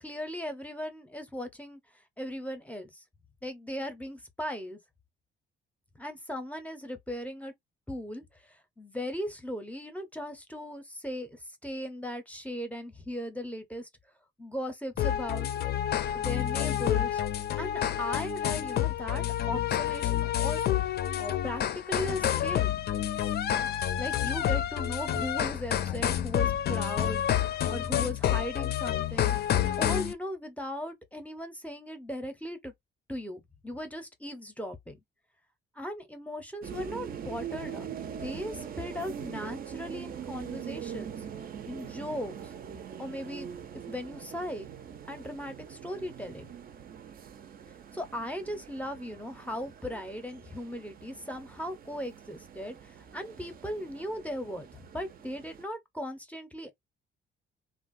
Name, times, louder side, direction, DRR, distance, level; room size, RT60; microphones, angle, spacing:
voice 1, 0.0-1.8 2.2-3.0 3.4-4.8 6.0-7.5 7.9-13.9 14.4-15.5 16.1-17.3 17.6-22.8 24.0-29.5 29.8-32.7 33.1-35.0 35.8-37.9 38.2-41.2 41.7-42.5 43.0-43.5 43.9-44.7 45.1-46.5 47.9-56.7, equal, 5° left, 0.6 m, -38 dB
sound 1, 15.0-30.1, left 11 dB, 55° left, 0.5 m, -29 dB
sound 2, 36.6-55.6, right 8 dB, 45° right, 0.5 m, -43 dB
3.3 x 2.1 x 2.4 m
cardioid pair, 130°, 20 cm